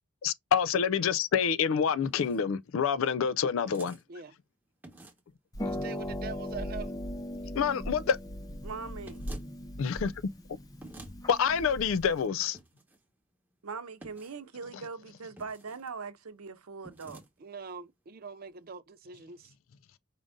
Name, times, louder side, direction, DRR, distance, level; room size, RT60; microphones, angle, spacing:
voice 1, 0.2-4.0 7.5-8.2 9.8-10.1 11.3-12.6, left 7 dB, 70° left, 0.4 m, -27 dB
sound 1, 0.9-1.3 2.0-2.4 3.7-4.0 4.8-5.3 9.0-9.5 10.8-11.1 12.5-13.0 14.0-14.4 15.4-15.9 16.8-17.3, right 1 dB, 10° right, 0.9 m, -50 dB
Harp, 5.5-12.3, equal, 15° left, 0.5 m, -38 dB
voice 2, 5.6-7.0 7.5-7.6 17.4-19.5, right 5 dB, 45° right, 0.4 m, -43 dB
voice 3, 8.6-9.3 13.6-17.2, right 5 dB, 90° right, 0.7 m, -41 dB
5.1 x 2.5 x 3.6 m
head